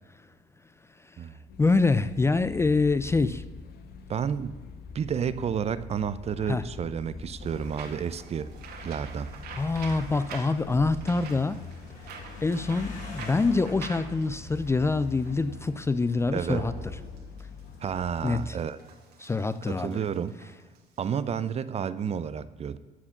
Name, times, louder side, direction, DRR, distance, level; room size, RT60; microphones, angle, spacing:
sound 1, 1.5-18.3, left 5 dB, 70° left, 1.1 m, -44 dB
voice 1, 1.6-3.4 6.5-6.6 9.6-11.6 12.4-16.7 18.2-18.6 19.2-20.0, left 3 dB, 15° left, 13 dB, 0.4 m, -25 dB
voice 2, 4.1-4.6 4.9-8.5 8.8-9.3 16.3-16.6 17.8-18.8 19.7-20.4 21.0-22.8, right 7 dB, 40° right, 15 dB, 0.6 m, -31 dB
sound 2, 7.1-17.2, left 2 dB, 45° left, 3.9 m, -50 dB
sound 3, 7.4-21.1, right 5 dB, 70° right, 2.0 m, -45 dB
14.5 x 4.9 x 7.2 m, 1.3 s
cardioid pair, 110°, 17 cm